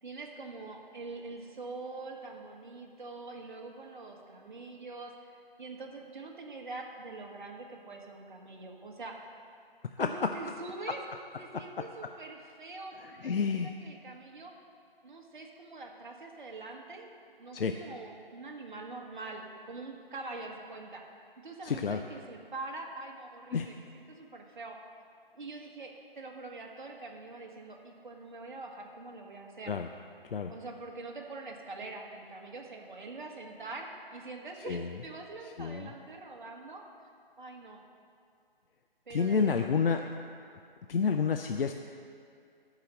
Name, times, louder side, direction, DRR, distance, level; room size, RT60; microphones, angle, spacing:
voice 1, 0.0-9.2 10.0-11.0 11.4-14.5 15.0-17.1 17.4-21.0 21.4-24.8 25.3-29.7 30.5-36.8 37.4-37.8 39.1-39.6 39.9-40.1, right 3 dB, 55° right, 1 dB, 1.6 m, -44 dB
voice 2, 13.2-13.7 17.5-17.7 21.6-22.0 23.5-23.7 29.7-29.9 30.3-30.5 34.7-34.9 35.6-35.9 39.1-40.0 40.9-41.8, left 6 dB, 70° left, 6 dB, 0.6 m, -29 dB
12.0 x 5.2 x 7.7 m, 2.4 s
figure-of-eight pair, 150°, 29 cm